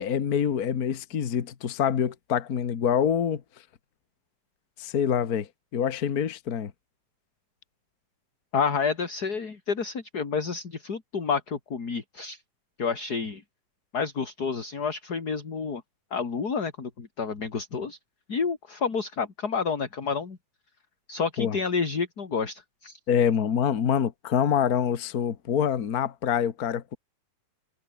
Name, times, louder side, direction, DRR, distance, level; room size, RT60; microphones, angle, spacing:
voice 1, 0.0-3.4 4.8-6.7 21.4-21.6 23.1-27.0, left 8 dB, 70° left, 0.8 m, -26 dB
voice 2, 8.5-12.4 12.8-13.4 13.9-15.8 16.1-18.0 18.3-20.4 21.1-23.0, left 5 dB, 30° left, 2.7 m, -29 dB
omnidirectional pair, 3.9 m